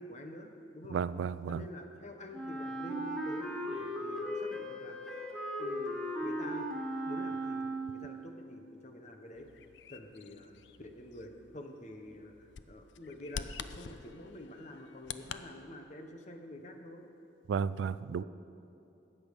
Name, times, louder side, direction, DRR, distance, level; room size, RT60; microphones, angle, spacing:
voice 1, 0.0-1.0 1.5-5.0 5.6-6.7 7.0-7.6 7.9-9.5 9.9-17.0 18.1-18.2, left 1 dB, 40° left, 5 dB, 1.0 m, -48 dB
voice 2, 0.9-1.6 17.5-18.2, right 6 dB, 80° right, 16 dB, 0.3 m, -33 dB
Wind instrument woodwind instrument, 2.3-8.1, equal, 5° left, 1.4 m, -37 dB
Bird vocalization bird call bird song, 9.4-15.4, left 7 dB, 70° left, 0.4 m, -47 dB
13.5 x 8.6 x 5.2 m, 2.8 s
head